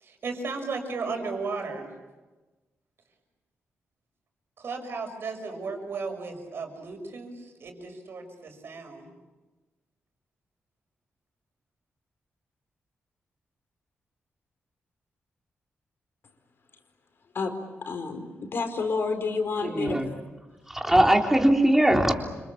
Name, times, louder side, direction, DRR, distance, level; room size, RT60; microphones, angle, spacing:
voice 1, 0.0-1.9 4.6-9.1, right 4 dB, 60° right, 4 dB, 6.2 m, -35 dB
voice 2, 17.3-20.0, left 4 dB, 60° left, 6 dB, 4.6 m, -30 dB
voice 3, 19.6-20.2 20.7-22.1, right 1 dB, 5° right, 1 dB, 3.5 m, -21 dB
30.0 x 26.5 x 7.2 m, 1.2 s
wide cardioid pair, 125°, 4 cm